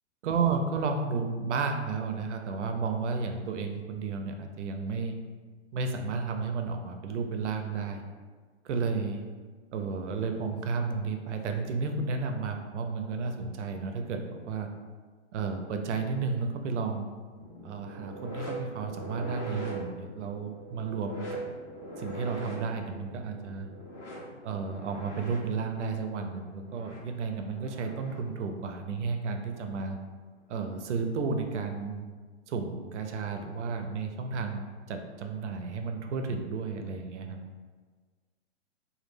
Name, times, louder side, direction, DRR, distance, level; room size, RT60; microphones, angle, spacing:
voice 1, 0.2-5.2 5.7-8.0 8.6-9.2 9.7-14.7 15.3-17.1 17.6-21.4 22.0-23.7 24.4-30.0 30.5-32.0 32.5-37.4, right 4 dB, 80° right, 5 dB, 0.5 m, -32 dB
sound 1, 17.3-28.3 29.6-29.8 30.8-30.9, right 2 dB, 85° left, 0.9 m, -42 dB
2.2 x 2.1 x 3.2 m, 1.5 s
hypercardioid pair, 170°, 35 cm